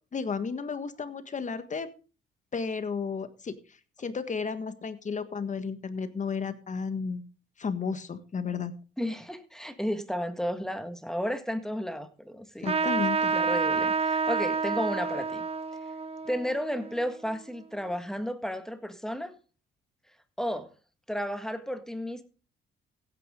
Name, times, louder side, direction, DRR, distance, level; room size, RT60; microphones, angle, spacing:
voice 1, 0.1-1.9 2.5-3.6 4.0-7.2 7.6-8.7 12.6-13.3, left 5 dB, 40° left, 1.6 m, -33 dB
voice 2, 9.0-12.7 13.3-15.4 16.3-19.3 20.4-20.7 21.1-22.2, equal, ahead, 1.7 m, -33 dB
Trumpet, 12.6-17.6, right 5 dB, 30° right, 1.1 m, -29 dB
16.0 x 9.4 x 3.7 m
cardioid pair, 90°, 20 cm